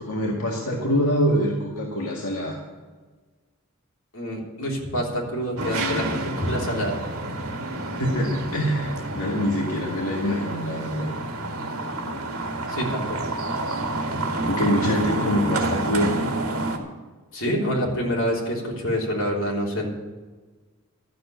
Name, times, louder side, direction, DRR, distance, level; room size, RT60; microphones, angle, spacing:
voice 1, 0.0-2.6 8.0-11.1 14.4-16.3, equal, 85° left, -2 dB, 2.1 m, -25 dB
voice 2, 4.1-7.0 12.7-13.2 17.3-19.9, equal, 60° left, -3 dB, 3.5 m, -27 dB
sound 1, 5.6-16.8, right 2 dB, 70° right, 1.9 m, -29 dB
13.0 x 6.8 x 9.3 m, 1.3 s
head